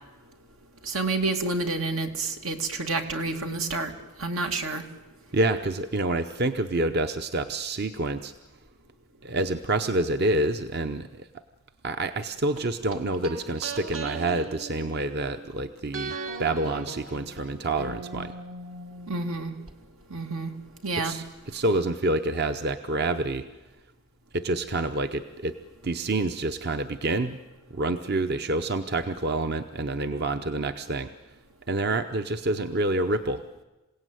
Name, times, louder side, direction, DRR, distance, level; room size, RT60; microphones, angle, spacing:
voice 1, 0.8-3.9 4.2-4.8 19.1-19.5 20.1-20.5 20.8-21.1, right 3 dB, 90° right, 4 dB, 2.7 m, -29 dB
voice 2, 5.3-8.3 9.2-11.3 11.8-18.3 21.0-23.5 24.3-25.6 25.8-27.4 27.7-31.1 31.7-33.4, right 2 dB, 50° right, 8 dB, 0.8 m, -27 dB
sound 1, 12.6-15.5 15.9-19.7 20.0-20.1, right 3 dB, 75° right, 1.9 m, -39 dB
27.5 x 17.5 x 9.3 m, 1.1 s
head